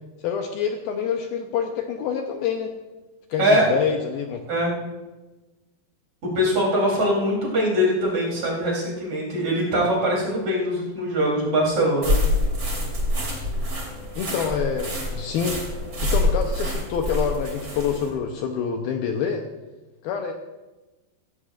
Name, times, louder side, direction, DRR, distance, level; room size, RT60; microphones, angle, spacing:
voice 1, 0.2-2.7 3.3-4.4 14.2-15.6 16.0-19.4 20.0-20.3, left 7 dB, 75° left, 3 dB, 2.4 m, -26 dB
voice 2, 3.4-3.7 4.5-4.7 6.3-12.1, equal, 45° right, -4 dB, 4.5 m, -22 dB
sound 1, 12.0-18.1, left 1 dB, 25° right, 2.7 m, -26 dB
16.0 x 16.0 x 2.5 m, 1.1 s
omnidirectional pair, 4.8 m